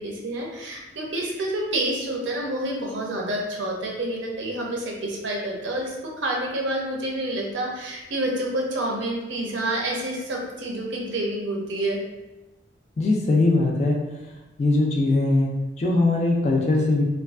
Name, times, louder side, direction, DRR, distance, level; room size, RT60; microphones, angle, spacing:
voice 1, 0.0-12.0, right 1 dB, 70° right, -1 dB, 0.5 m, -28 dB
voice 2, 13.0-14.0 14.6-15.5 15.8-17.0, left 2 dB, 35° left, -1 dB, 0.3 m, -20 dB
2.4 x 2.3 x 2.3 m, 1.0 s
head